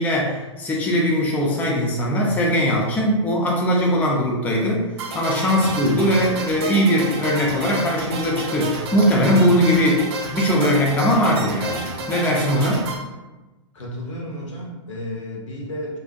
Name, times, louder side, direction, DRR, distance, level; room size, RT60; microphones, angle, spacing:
voice 1, 0.0-4.9 5.1-12.9, equal, 10° left, -3 dB, 0.3 m, -20 dB
sound 1, 5.0-13.0, right 2 dB, 55° right, 0.5 m, -30 dB
voice 2, 13.7-16.0, equal, 75° left, -2 dB, 0.8 m, -32 dB
2.5 x 2.1 x 2.5 m, 1.1 s
hypercardioid pair, 115°, 16 cm